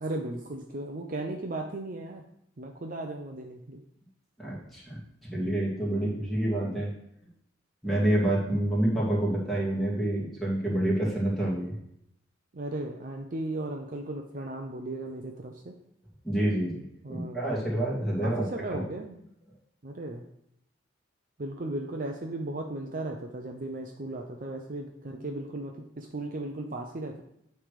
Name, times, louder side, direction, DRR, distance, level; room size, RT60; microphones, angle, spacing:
voice 1, 0.0-2.2 2.6-3.8 12.5-15.7 17.0-17.6 18.2-19.2 19.8-20.2 21.4-27.2, right 2 dB, 40° right, 2 dB, 0.6 m, -36 dB
voice 2, 4.4-5.0 5.3-6.9 7.8-11.8 16.2-16.8 17.1-18.5 18.7-18.8, right 1 dB, ahead, -6 dB, 2.3 m, -27 dB
9.2 x 3.3 x 6.5 m, 0.76 s
head